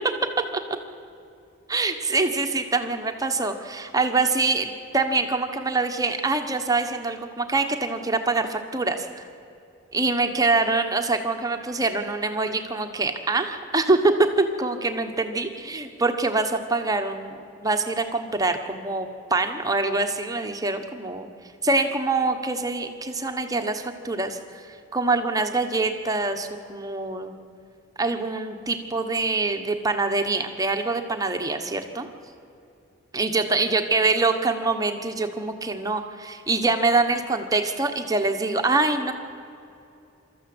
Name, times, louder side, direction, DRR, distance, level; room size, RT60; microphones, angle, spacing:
voice 1, 1.7-9.2 9.9-17.3 17.6-21.3 21.6-24.7 24.9-27.4 28.0-32.1 33.1-39.1, right 3 dB, 15° right, 6 dB, 1.2 m, -24 dB
26.5 x 13.5 x 7.9 m, 2.7 s
head